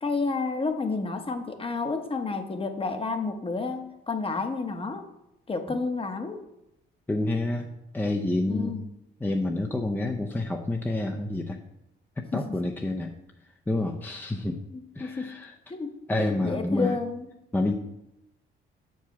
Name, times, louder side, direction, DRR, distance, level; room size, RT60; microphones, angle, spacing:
voice 1, 0.0-5.0 5.5-6.4 8.5-8.9 12.3-12.4 14.7-15.3 15.7-17.3, left 4 dB, 30° left, 7 dB, 0.9 m, -30 dB
voice 2, 7.1-8.7 9.2-11.6 12.2-13.1 13.7-14.6 15.0-15.5 16.1-17.0 17.5-17.7, left 2 dB, 10° left, 2 dB, 0.6 m, -28 dB
6.9 x 4.8 x 5.9 m, 0.87 s
cardioid pair, 90°, 20 cm